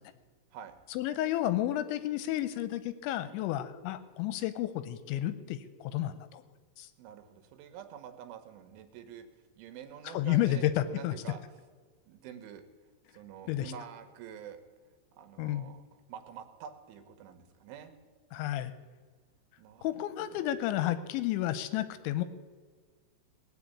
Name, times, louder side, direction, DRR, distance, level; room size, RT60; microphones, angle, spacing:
voice 1, 0.9-6.4 6.8-6.9 10.1-11.1 13.5-13.7 15.4-15.7 18.3-18.7 19.8-22.2, left 13 dB, 85° left, 13 dB, 2.9 m, -31 dB
voice 2, 7.0-9.3 9.6-11.4 12.1-12.6 13.1-14.6 15.2-17.9 19.6-20.6, right 9 dB, 85° right, 9 dB, 3.4 m, -47 dB
19.0 x 6.4 x 8.4 m, 1.5 s
omnidirectional pair, 5.5 m